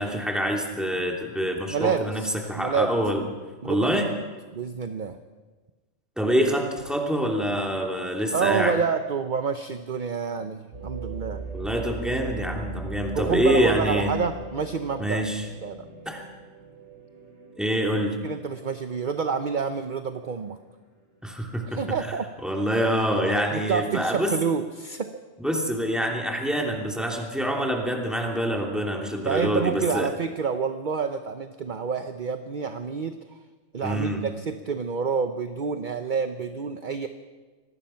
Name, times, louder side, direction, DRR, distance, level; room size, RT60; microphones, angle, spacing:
voice 1, 0.0-2.2 2.5-3.2 3.6-4.1 6.2-8.7 11.5-14.1 15.0-15.5 16.0-16.2 17.6-18.2 21.2-21.8 22.4-24.3 25.4-30.1 33.8-34.2, equal, ahead, 0 dB, 2.9 m, -26 dB
voice 2, 1.7-2.3 2.6-3.0 3.6-4.2 4.5-5.2 8.3-11.4 13.1-15.2 15.6-15.9 18.2-20.6 21.7-22.3 23.5-25.1 29.2-33.4 33.7-37.1, right 6 dB, 45° right, 8 dB, 0.9 m, -28 dB
sound 1, 10.7-20.7 21.2-21.3 21.9-22.3, right 3 dB, 85° right, 4.9 m, -39 dB
25.5 x 19.5 x 5.8 m, 1.3 s
omnidirectional pair, 1.3 m